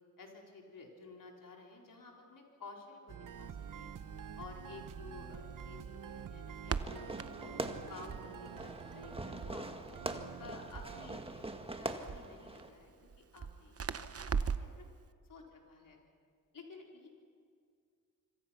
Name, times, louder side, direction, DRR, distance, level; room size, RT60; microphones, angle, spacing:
voice 1, 0.2-3.9 4.4-10.0 10.4-14.9 15.3-16.0 16.5-17.1, left 3 dB, 75° left, 0 dB, 4.2 m, -53 dB
sound 1, 3.1-12.3, right 8 dB, 70° right, 0.8 m, -49 dB
Crackle, 3.3-14.8, right 6 dB, 45° right, 0.9 m, -43 dB
Fireworks, 6.7-12.7, right 2 dB, 15° right, 1.7 m, -43 dB
26.0 x 25.5 x 5.9 m, 2.2 s
wide cardioid pair, 85°, 33 cm